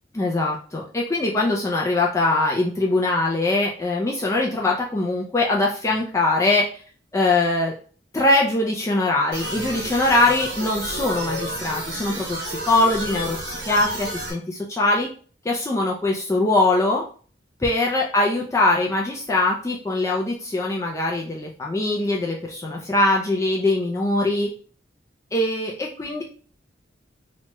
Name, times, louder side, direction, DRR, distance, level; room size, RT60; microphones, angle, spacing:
voice 1, 0.1-6.7 7.1-7.7 8.1-15.1 15.5-17.0 17.6-24.5 25.3-26.2, left 2 dB, 15° left, -2 dB, 0.3 m, -22 dB
sound 1, 9.3-14.3, right 1 dB, 80° right, 1.0 m, -31 dB
3.0 x 2.2 x 2.9 m, 0.42 s
head